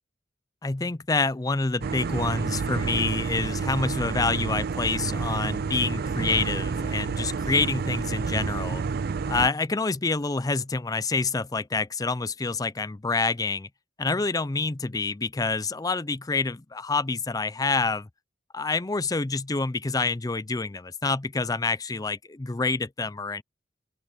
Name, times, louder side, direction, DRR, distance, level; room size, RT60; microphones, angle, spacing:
voice 1, 0.6-8.8 9.3-13.7 14.0-18.1 18.5-23.4, left 3 dB, 20° left, 0.5 m, -27 dB
sound 1, 1.8-9.5, right 5 dB, 55° right, 0.4 m, -29 dB
open air
head